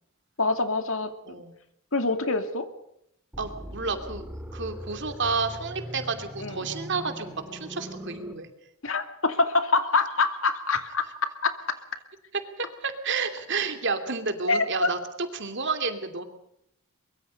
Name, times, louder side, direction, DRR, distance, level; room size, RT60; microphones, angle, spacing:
voice 1, 0.4-1.1 1.9-2.7 6.4-6.6 8.8-11.1 11.4-11.5 14.5-14.9, left 3 dB, 60° left, 8 dB, 2.4 m, -25 dB
voice 2, 1.3-1.6 3.4-4.3 4.5-8.5 12.6-15.0 15.3-16.2, right 4 dB, 55° right, 8 dB, 2.8 m, -30 dB
sound 1, 3.3-8.3, equal, 5° right, 2.2 m, -40 dB
23.5 x 23.0 x 5.4 m, 0.76 s
head